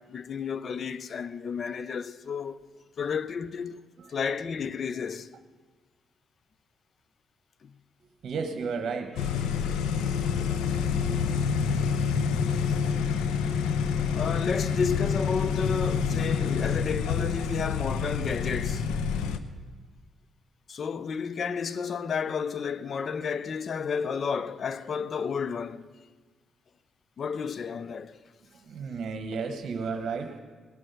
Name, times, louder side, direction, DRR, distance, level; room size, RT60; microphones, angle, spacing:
voice 1, 0.0-2.6 3.0-3.8 4.1-5.3 7.6-7.7 14.1-18.9 20.7-25.9 27.2-28.2, left 6 dB, 50° left, 0.6 m, -32 dB
voice 2, 8.0-9.3 28.5-30.4, right 5 dB, 55° right, 1.1 m, -33 dB
sound 1, 9.2-19.4, left 6 dB, 90° left, 0.7 m, -27 dB
18.5 x 6.2 x 7.9 m
cardioid pair, 90°, 0 cm